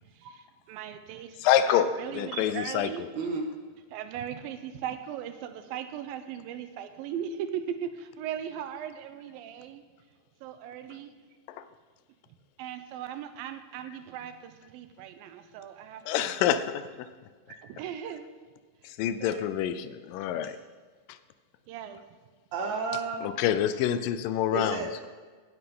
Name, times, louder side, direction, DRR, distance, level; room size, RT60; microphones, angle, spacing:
voice 1, 0.2-1.4 1.7-3.0 3.9-9.8 10.4-11.1 12.6-16.3 17.6-18.3 19.2-19.8 21.7-22.0, right 9 dB, 90° right, 9 dB, 2.5 m, -38 dB
voice 2, 1.4-3.1 11.5-11.6 16.1-17.1 18.8-20.6 21.1-21.2 23.2-25.1, left 10 dB, 80° left, 12 dB, 2.2 m, -27 dB
voice 3, 3.1-3.5 22.5-23.3 24.5-25.1, right 4 dB, 70° right, 3 dB, 1.8 m, -32 dB
15.5 x 9.3 x 3.7 m, 1.5 s
omnidirectional pair, 4.0 m